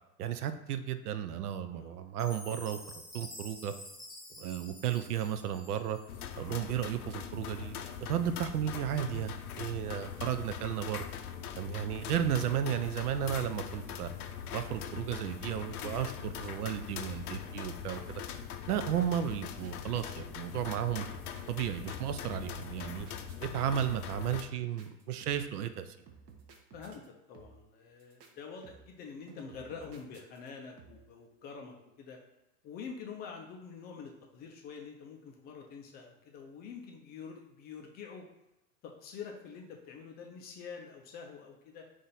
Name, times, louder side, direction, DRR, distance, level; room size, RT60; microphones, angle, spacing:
voice 1, 0.2-2.8 3.1-3.7 4.4-6.0 6.4-11.0 11.6-14.1 14.5-18.2 18.7-21.1 21.5-23.1 23.4-26.0, right 9 dB, 75° right, 10 dB, 0.5 m, -34 dB
Chime, 2.2-6.4, left 1 dB, ahead, 1.0 m, -49 dB
sound 1, 6.1-24.4, left 8 dB, 70° left, 0.6 m, -42 dB
voice 2, 15.8-16.2 26.7-32.2 32.6-38.3 38.8-41.9, left 6 dB, 25° left, 1 dB, 0.4 m, -46 dB
sound 2, 16.4-16.8 17.1-17.5 17.7-18.0 18.3-18.7 19.0-20.1 20.5-20.9 21.1-22.2 22.4-23.6 23.9-24.3 24.8-25.6 26.1-27.1 27.3-27.7 28.0-28.3 28.6-29.0 29.3-30.5 30.8-31.2, right 5 dB, 30° right, 0.7 m, -56 dB
3.8 x 2.5 x 4.0 m, 0.96 s
hypercardioid pair, 90°, 46 cm